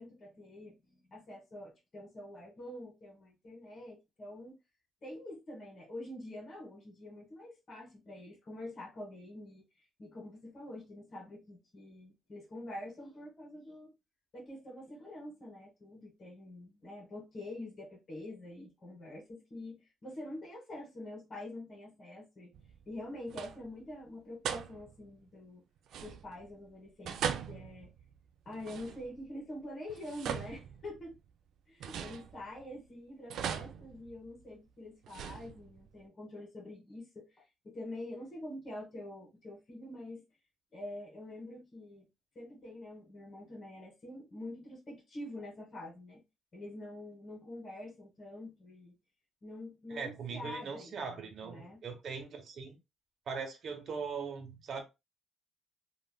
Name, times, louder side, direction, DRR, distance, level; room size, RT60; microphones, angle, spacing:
voice 1, 0.0-4.6 5.0-9.6 10.0-13.9 14.3-22.5 22.9-25.6 26.0-27.2 27.5-27.9 28.4-31.2 31.7-40.2 40.7-42.1 42.3-46.2 46.5-48.9 49.4-51.8, left 1 dB, 40° left, 1.2 m, -46 dB
sound 1, 22.5-23.0 23.3-23.8 24.4-25.1 25.9-26.5 27.0-29.3 29.9-31.2 31.8-32.8 33.3-34.5 35.0-35.9, right 8 dB, 75° right, 0.3 m, -40 dB
voice 2, 49.9-52.7 53.3-54.8, right 5 dB, 60° right, 0.8 m, -40 dB
3.3 x 2.4 x 2.2 m
cardioid pair, 90°, 0 cm